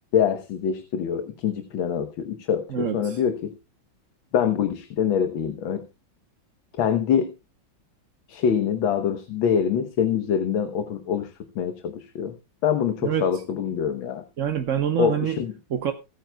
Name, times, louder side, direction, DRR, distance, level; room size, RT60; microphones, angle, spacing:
voice 1, 0.1-3.5 4.3-5.8 6.8-7.3 8.3-12.4 12.6-14.2 15.0-15.5, left 8 dB, 75° left, 8 dB, 1.8 m, -25 dB
voice 2, 2.7-3.2 13.0-13.4 14.4-15.4 15.7-15.9, right 9 dB, 50° right, 7 dB, 1.0 m, -26 dB
24.5 x 9.2 x 2.3 m, 0.28 s
omnidirectional pair, 2.2 m